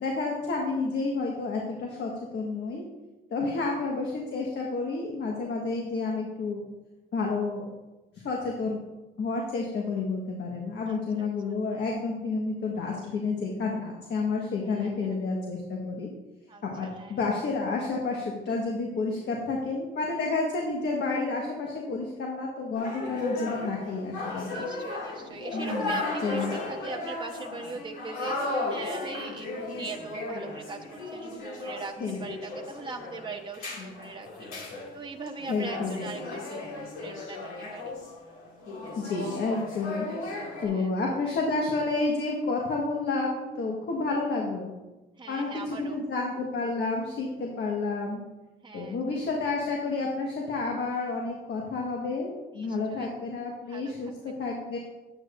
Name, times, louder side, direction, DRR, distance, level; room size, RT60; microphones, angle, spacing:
voice 1, 0.0-2.8 3.3-6.6 7.1-7.7 8.2-8.8 9.2-16.1 16.6-24.6 25.5-25.9 26.2-26.5 32.0-32.2 33.8-33.9 35.5-36.0 39.0-40.1 40.6-44.7 45.3-48.2 48.7-54.8, left 3 dB, 60° left, -1 dB, 1.5 m, -30 dB
voice 2, 10.8-11.6 14.6-15.3 16.5-17.2 24.5-37.4 37.7-38.0 40.6-41.2 45.2-46.0 48.6-49.0 52.5-53.1 53.7-54.4, right 4 dB, 25° right, 1 dB, 1.0 m, -41 dB
sound 1, 22.7-40.7, left 2 dB, 90° left, 2.4 m, -35 dB
9.9 x 8.9 x 2.6 m, 1.1 s
cardioid pair, 90°, 20 cm